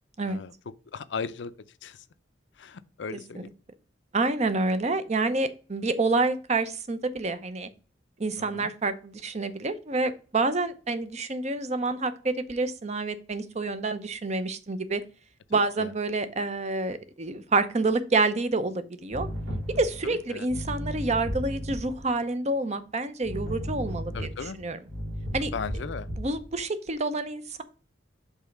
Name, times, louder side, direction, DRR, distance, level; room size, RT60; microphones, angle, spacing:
voice 1, 0.9-1.5 1.8-2.0 2.6-3.5 8.4-8.7 15.5-15.9 20.0-20.5 24.1-24.6 25.5-26.1, left 5 dB, 70° left, 0.5 m, -37 dB
voice 2, 4.1-7.7 8.2-15.0 15.5-19.3 19.7-24.3 24.6-24.8 25.3-25.5 26.2-27.6, right 3 dB, 35° right, 0.7 m, -28 dB
sound 1, 19.1-22.1 23.2-26.5, equal, 80° right, 2.3 m, -34 dB
5.5 x 4.0 x 5.9 m
head